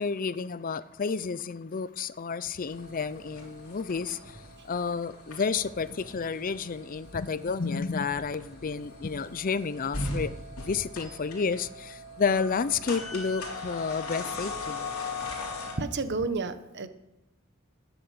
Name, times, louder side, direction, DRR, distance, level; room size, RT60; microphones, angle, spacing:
voice 1, 0.0-4.4 4.6-14.9, left 5 dB, 40° left, 0.5 m, -31 dB
sound 1, 2.7-15.7, left 2 dB, 90° left, 3.8 m, -39 dB
voice 2, 15.8-16.9, right 3 dB, 55° right, 1.1 m, -30 dB
12.5 x 10.0 x 8.2 m
head